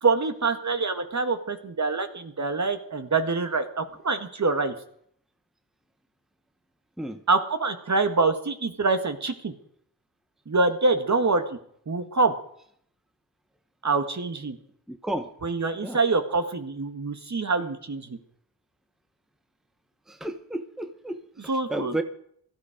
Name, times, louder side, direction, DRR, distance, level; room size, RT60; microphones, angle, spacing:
voice 1, 0.0-4.7 7.3-9.5 10.5-11.4 11.9-12.3 13.8-14.6 15.4-18.2 21.5-22.0, right 3 dB, 40° right, 8 dB, 1.8 m, -25 dB
voice 2, 14.9-15.3 15.8-16.0 20.1-21.2 21.7-22.0, right 1 dB, ahead, 8 dB, 1.1 m, -31 dB
16.5 x 13.5 x 5.1 m, 0.65 s
cardioid pair, 80°, 43 cm